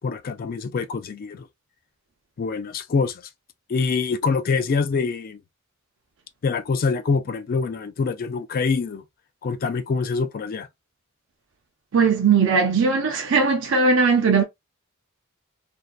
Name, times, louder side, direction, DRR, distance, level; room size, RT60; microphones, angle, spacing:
voice 1, 0.0-1.5 2.4-3.2 3.7-5.4 6.4-9.0 9.4-10.7, left 4 dB, 45° left, 0.3 m, -25 dB
voice 2, 11.9-14.4, right 5 dB, 60° right, 0.5 m, -19 dB
2.6 x 2.1 x 2.2 m
head